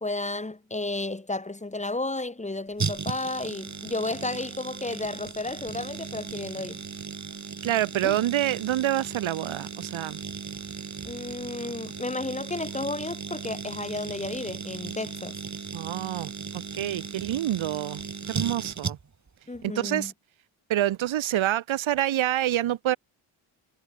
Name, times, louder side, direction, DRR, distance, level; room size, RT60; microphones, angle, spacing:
voice 1, 0.0-6.8 8.0-8.2 11.0-15.4 19.5-20.1, left 2 dB, 15° left, 2.6 m, -32 dB
sound 1, 2.8-19.3 19.5-19.6, right 5 dB, 35° right, 3.5 m, -36 dB
voice 2, 7.6-10.2 15.7-18.0 18.3-19.0 19.6-20.1 20.7-23.0, right 13 dB, 75° right, 2.8 m, -27 dB
supercardioid pair, 55°, 47 cm